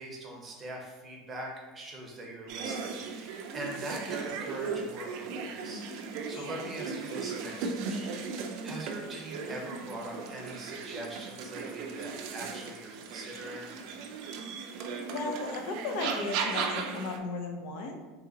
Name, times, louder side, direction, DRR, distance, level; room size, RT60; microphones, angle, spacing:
voice 1, 0.0-13.7, right 1 dB, 15° right, -1 dB, 0.7 m, -42 dB
sound 1, 2.5-17.2, right 5 dB, 50° right, 0.5 m, -37 dB
voice 2, 6.3-6.6 14.7-14.8 15.1-18.0, left 3 dB, 55° left, 3 dB, 0.5 m, -36 dB
3.9 x 2.8 x 3.9 m, 1.2 s
supercardioid pair, 170°, 0 cm